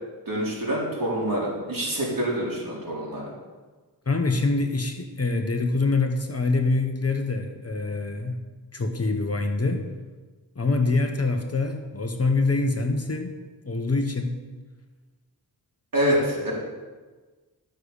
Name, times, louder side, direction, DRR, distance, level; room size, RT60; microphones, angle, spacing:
voice 1, 0.3-3.3 15.9-16.5, equal, 55° right, -5 dB, 4.1 m, -26 dB
voice 2, 4.1-8.4 8.7-9.8 10.5-13.4 13.6-14.4, left 3 dB, 40° left, 5 dB, 1.1 m, -25 dB
12.0 x 6.5 x 6.9 m, 1.3 s
wide cardioid pair, 95°, 39 cm